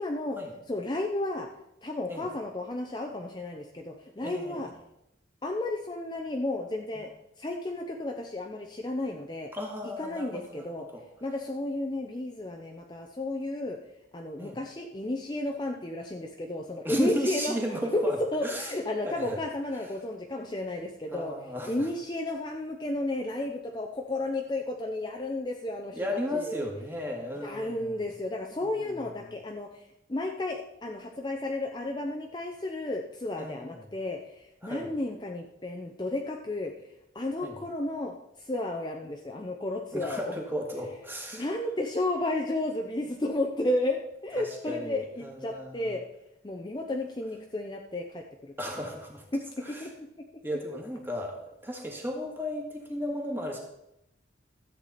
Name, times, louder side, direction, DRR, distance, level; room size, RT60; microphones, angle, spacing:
voice 1, 0.0-0.4 0.7-1.5 1.8-4.7 5.4-7.1 7.4-9.5 10.0-10.9 11.2-13.8 14.1-18.0 18.3-21.3 21.7-26.0 26.3-26.7 27.4-36.7 37.1-40.3 41.3-46.0 46.4-48.5 49.3-50.1, left 1 dB, 25° left, 2 dB, 0.6 m, -33 dB
voice 2, 4.2-4.7 9.5-10.7 10.9-11.0 14.4-14.6 16.8-18.7 19.0-19.4 21.1-21.9 25.9-28.1 28.6-29.3 33.4-33.9 34.6-34.9 37.4-37.6 39.9-41.5 44.4-46.0 46.9-47.0 48.6-49.3 49.6-49.9 50.4-53.6, equal, 10° right, 0 dB, 1.8 m, -35 dB
13.5 x 8.2 x 4.2 m, 0.84 s
head